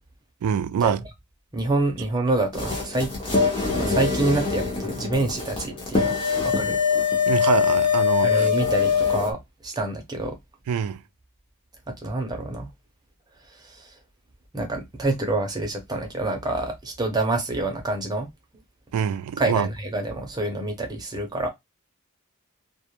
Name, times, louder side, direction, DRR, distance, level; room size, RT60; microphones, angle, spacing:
voice 1, 0.4-1.0 7.3-8.5 10.7-11.0 18.9-19.7, right 8 dB, 80° right, 0.3 m, -25 dB
voice 2, 1.5-3.1 3.7-6.2 6.4-6.8 8.2-10.4 11.9-12.7 13.6-13.9 14.5-18.3 19.4-21.5, right 2 dB, 20° right, 0.6 m, -27 dB
sound 1, 2.5-9.3, left 6 dB, 25° left, 0.7 m, -23 dB
2.3 x 2.1 x 2.9 m
head